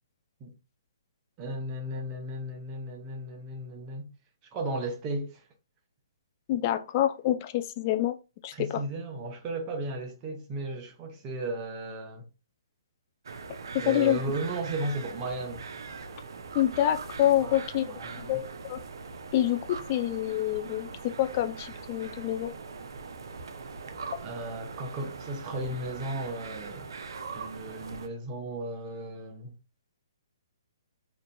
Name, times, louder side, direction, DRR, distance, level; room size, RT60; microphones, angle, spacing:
voice 1, 1.4-4.1 4.5-5.4 8.5-12.3 13.8-15.7 17.3-18.4 24.2-26.9 27.3-29.6, right 2 dB, 30° right, 0.7 m, -35 dB
voice 2, 6.5-8.1 8.4-8.8 13.7-14.2 16.5-17.9 18.2-18.4 18.7-18.8 19.3-22.5, left 12 dB, 35° left, 0.3 m, -27 dB
sound 1, 13.2-28.1, right 4 dB, 65° right, 0.4 m, -41 dB
2.9 x 2.5 x 2.2 m
figure-of-eight pair, 135°, 2 cm